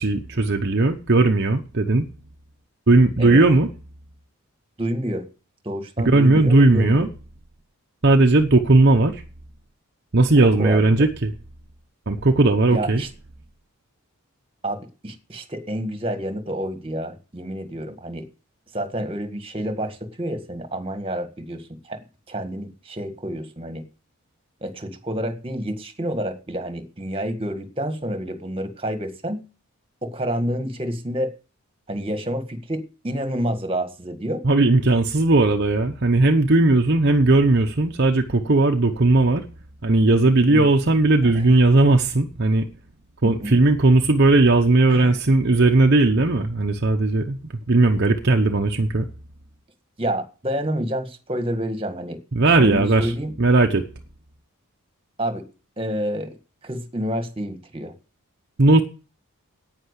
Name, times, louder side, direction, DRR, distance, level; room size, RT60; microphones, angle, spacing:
voice 1, 0.0-2.0 2.9-3.7 6.1-7.1 8.0-9.2 10.1-11.3 12.1-13.0 34.4-39.4 39.8-42.7 43.2-47.4 47.7-49.0 52.3-53.1 53.4-53.9 58.6-58.8, right 2 dB, 50° right, 0.9 m, -17 dB
voice 2, 4.8-5.3 5.6-7.1 10.4-10.8 12.7-13.1 14.6-18.3 18.7-22.0 22.3-23.8 24.6-29.4 30.0-31.3 31.9-34.4 40.5-40.6 41.2-41.5 43.2-43.6 44.9-45.2 50.0-52.2 52.6-53.3 55.2-55.4 55.8-56.4 56.6-57.9, equal, 25° right, 1.7 m, -28 dB
10.5 x 9.2 x 8.2 m
head